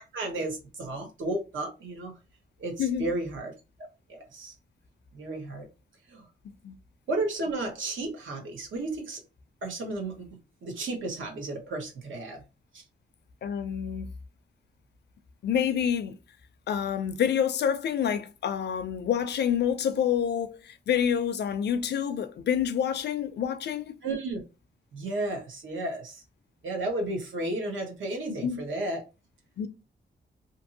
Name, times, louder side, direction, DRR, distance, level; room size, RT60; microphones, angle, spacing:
voice 1, 0.0-2.1 2.6-3.5 4.1-4.5 5.1-5.7 6.1-6.2 7.1-9.2 9.6-10.3 10.6-12.4 24.0-24.4 24.9-26.2 26.6-29.0, right 2 dB, 85° right, 1.1 m, -33 dB
voice 2, 13.4-14.1 15.4-16.2 16.7-24.0 28.3-28.6 29.6-29.7, left 8 dB, 60° left, 0.4 m, -28 dB
2.7 x 2.6 x 2.7 m
wide cardioid pair, 155°, 20 cm